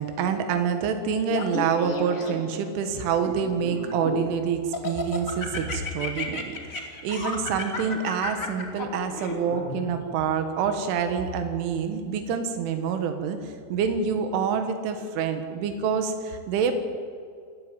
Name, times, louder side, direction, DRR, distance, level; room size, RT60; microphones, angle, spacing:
voice 1, 0.0-16.8, right 6 dB, 80° right, 7 dB, 3.9 m, -27 dB
Laughter, 1.3-2.6 3.2-4.3 4.7-9.8, left 3 dB, 30° left, 1.7 m, -33 dB
26.5 x 11.0 x 9.1 m, 2.2 s
omnidirectional pair, 5.6 m